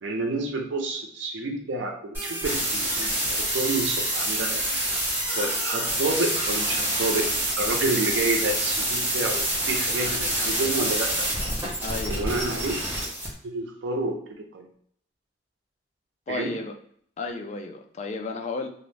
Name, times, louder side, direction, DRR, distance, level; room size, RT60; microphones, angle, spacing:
voice 1, 0.0-4.6 5.4-7.3 7.6-11.3 12.1-12.8 13.4-14.7 16.3-16.5, right 2 dB, 90° right, 2 dB, 0.4 m, -29 dB
sound 1, 2.1-13.3, right 1 dB, 10° right, 0.8 m, -27 dB
voice 2, 11.8-12.2 16.3-16.7 17.2-18.7, left 3 dB, 40° left, 5 dB, 0.3 m, -33 dB
2.4 x 2.0 x 3.1 m, 0.64 s
head